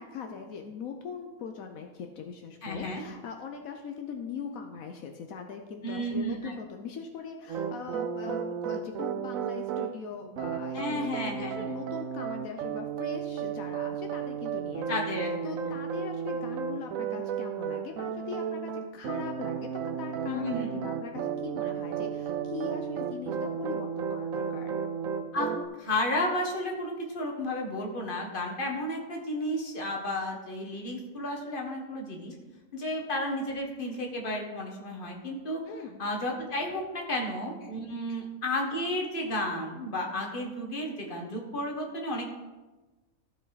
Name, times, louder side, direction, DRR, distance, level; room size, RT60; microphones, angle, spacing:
voice 1, 0.0-15.0 15.4-19.7 20.0-24.8 35.7-36.0 37.2-37.7 38.1-38.2, left 6 dB, 80° left, 4 dB, 1.2 m, -41 dB
voice 2, 2.6-3.0 5.8-6.5 10.7-11.6 14.9-15.7 20.3-20.7 25.3-25.5 25.8-32.3 32.7-35.6 36.0-42.3, left 1 dB, 40° left, 0 dB, 1.7 m, -32 dB
sound 1, 7.5-9.9 10.4-25.7, right 7 dB, 75° right, 1.1 m, -33 dB
14.5 x 5.3 x 4.1 m, 1.2 s
omnidirectional pair, 1.5 m